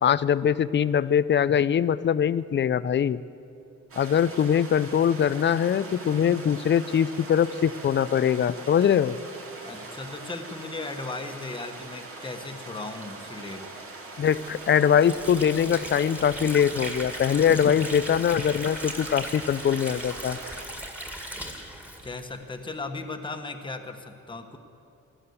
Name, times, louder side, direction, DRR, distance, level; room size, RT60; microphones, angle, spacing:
voice 1, 0.0-3.2 4.0-9.2 14.2-20.4, left 8 dB, 40° left, 17 dB, 0.5 m, -22 dB
sound 1, 3.9-20.6, right 3 dB, 45° right, 2.4 m, -42 dB
voice 2, 9.6-13.7 22.0-24.6, left 3 dB, 15° left, 4 dB, 1.3 m, -37 dB
Water / Sink (filling or washing), 14.2-22.8, equal, 5° right, 2.1 m, -38 dB
16.0 x 12.0 x 7.1 m, 2.7 s
cardioid pair, 90°, 30 cm